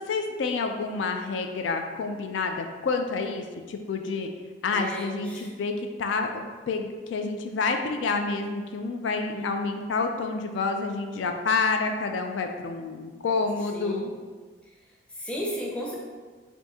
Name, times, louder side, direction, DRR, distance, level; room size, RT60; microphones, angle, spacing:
voice 1, 0.1-4.3 4.6-5.7 6.0-14.1, left 4 dB, 75° left, 5 dB, 0.3 m, -28 dB
voice 2, 4.7-5.5 9.3-9.4 13.7-14.0 15.2-16.0, equal, 5° left, -4 dB, 0.6 m, -34 dB
3.5 x 2.6 x 4.1 m, 1.4 s
head